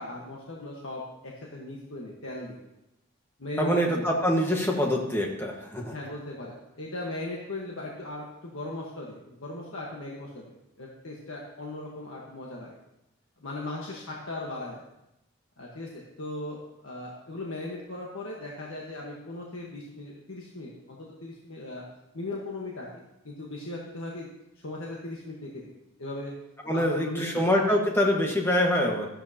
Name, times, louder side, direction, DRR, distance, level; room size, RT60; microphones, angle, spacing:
voice 1, 0.0-2.6 3.4-4.1 5.9-12.8 13.4-14.9 15.6-21.8 22.1-24.3 24.6-26.3 26.7-27.4, left 2 dB, 65° left, -3 dB, 1.4 m, -38 dB
voice 2, 3.6-5.9 26.7-29.1, equal, 10° left, 0 dB, 1.5 m, -25 dB
13.5 x 11.5 x 2.9 m, 0.89 s
head